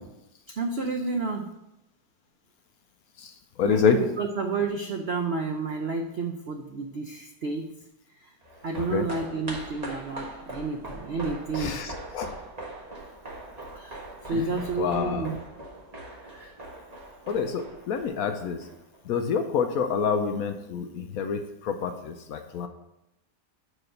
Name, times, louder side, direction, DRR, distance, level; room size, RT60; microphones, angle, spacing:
voice 1, 0.6-1.5 3.6-7.7 8.6-11.8 13.7-14.0 14.3-15.4 16.3-16.5, right 4 dB, 75° right, 3 dB, 0.5 m, -30 dB
voice 2, 3.6-4.0 8.8-9.1 11.5-12.3 14.3-15.3 17.3-18.6 19.1-22.7, left 6 dB, 70° left, 6 dB, 0.9 m, -27 dB
sound 1, 8.4-19.0 19.3-19.4, right 1 dB, 25° right, 1.2 m, -41 dB
6.0 x 4.8 x 6.5 m, 0.87 s
omnidirectional pair, 1.9 m